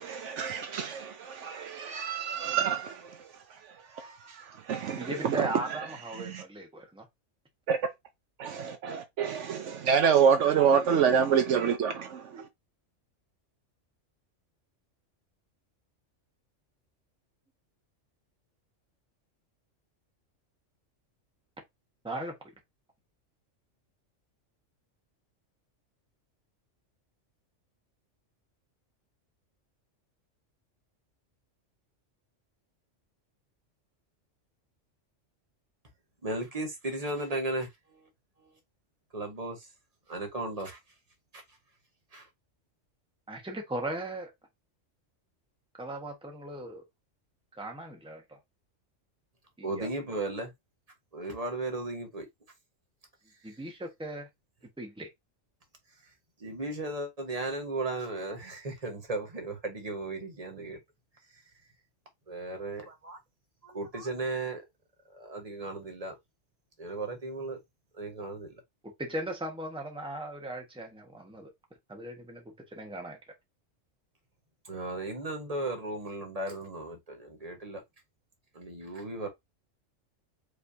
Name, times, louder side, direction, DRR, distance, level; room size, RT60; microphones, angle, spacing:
voice 1, 0.0-3.3 4.0-5.4 6.2-6.4 7.7-7.8 8.4-12.5, right 7 dB, 70° right, 1.0 m, -27 dB
voice 2, 5.0-7.1 22.0-22.5 43.3-44.3 45.8-46.8 47.5-48.4 49.6-49.9 53.4-54.3 54.8-55.1 69.0-71.5 71.9-73.2, right 1 dB, 5° right, 1.1 m, -38 dB
voice 3, 36.2-38.1 38.4-38.6 39.1-39.7 40.1-40.8 41.3-41.6 42.1-42.3 49.6-50.5 51.1-52.3 53.4-53.6 56.0-56.1 56.4-60.8 61.3-61.4 62.3-63.2 63.6-64.7 65.1-66.2 66.8-67.6 67.9-68.6 74.6-77.8 78.5-79.3, right 2 dB, 30° right, 1.2 m, -36 dB
4.9 x 3.3 x 2.7 m
omnidirectional pair, 1.3 m